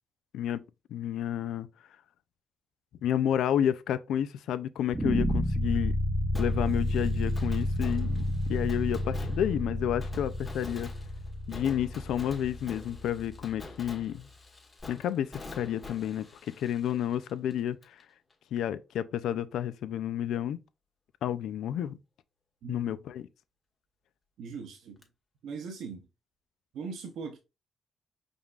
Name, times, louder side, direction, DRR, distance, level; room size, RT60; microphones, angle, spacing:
voice 1, 0.9-1.7 3.0-6.0 6.3-8.2 8.5-10.9 11.5-14.3 14.9-16.3 16.6-18.0 18.5-20.6 21.2-22.0 22.7-23.3, left 10 dB, 90° left, 0.4 m, -30 dB
sound 1, 4.9-14.0, left 1 dB, 15° right, 0.7 m, -31 dB
Fireworks, 6.3-18.0 18.3-18.4 25.0-25.1, left 2 dB, 30° left, 1.3 m, -48 dB
voice 2, 22.6-22.9 24.4-25.0 25.4-26.0 26.7-27.4, right 5 dB, 85° right, 0.7 m, -40 dB
5.2 x 3.3 x 2.4 m
cardioid pair, 85°, 0 cm